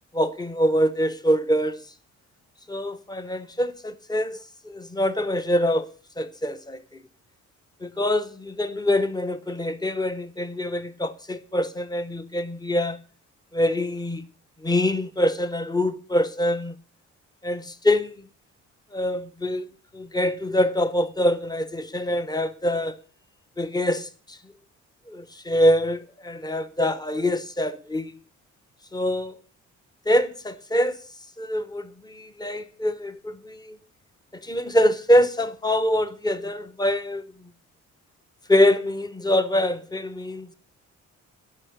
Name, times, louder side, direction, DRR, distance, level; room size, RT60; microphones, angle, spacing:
voice 1, 0.1-1.8 2.7-4.4 4.6-5.9 6.2-6.8 7.8-13.0 13.5-14.2 14.6-16.8 17.4-18.3 18.9-19.7 19.9-23.0 23.6-24.4 25.1-28.1 28.9-29.3 30.1-31.0 31.4-33.8 34.3-37.5 38.5-40.5, left 1 dB, 15° left, 0.9 m, -24 dB
10.5 x 5.8 x 6.7 m
cardioid pair, 90°, 30 cm